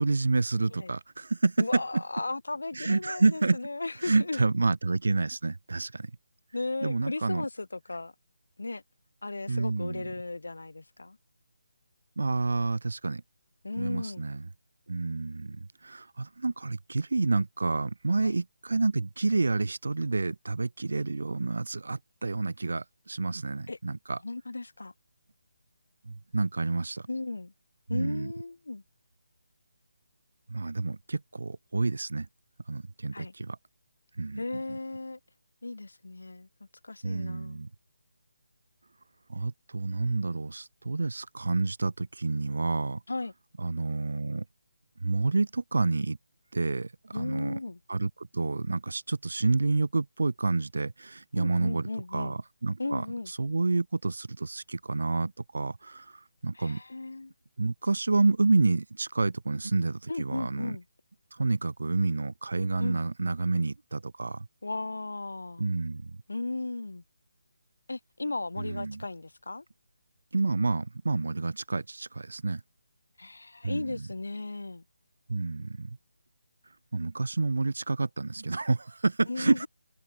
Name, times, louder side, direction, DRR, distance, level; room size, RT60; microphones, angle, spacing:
voice 1, 0.0-2.0 2.7-3.6 4.0-6.1 6.8-7.5 9.5-10.1 12.2-13.2 13.8-14.5 14.9-24.2 26.1-27.1 27.9-28.3 30.5-32.3 32.7-33.6 34.2-34.4 37.0-37.7 39.3-43.0 43.6-44.5 45.0-46.2 46.5-47.6 47.9-56.8 57.6-60.8 61.3-64.5 65.6-66.2 68.6-69.0 70.3-72.6 73.6-74.1 75.3-76.0 76.9-79.6, right 3 dB, 65° right, 1.8 m, -29 dB
voice 2, 1.6-4.4 6.5-8.1 8.6-8.8 9.2-11.2 13.6-14.2 18.2-18.3 23.7-23.8 24.2-24.9 27.1-27.5 27.9-28.8 33.1-33.3 34.4-35.2 35.6-36.5 36.8-37.6 43.1-43.3 47.1-47.8 51.4-52.4 52.8-53.3 56.5-57.3 60.1-60.8 62.8-63.0 64.6-65.7 66.3-67.0 67.9-69.6 73.2-74.8 79.3-79.7, left 2 dB, 70° left, 2.3 m, -35 dB
open air
figure-of-eight pair, 150°, 0 cm